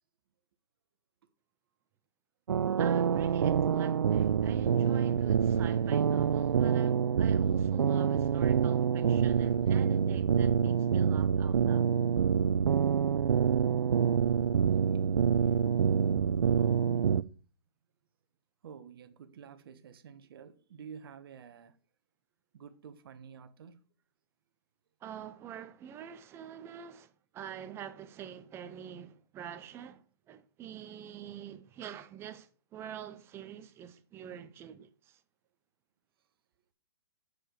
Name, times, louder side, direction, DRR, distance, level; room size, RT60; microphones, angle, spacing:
sound 1, 2.5-17.2, right 7 dB, 80° right, 0.5 m, -26 dB
voice 1, 2.8-11.9 25.0-35.2, right 9 dB, 20° right, 0.7 m, -46 dB
voice 2, 14.9-15.2 15.4-15.5 15.9-16.1 16.4-17.2 18.6-21.8 22.5-23.8, right 7 dB, 55° right, 1.3 m, -50 dB
8.5 x 4.9 x 6.7 m
hypercardioid pair, 140°, 14 cm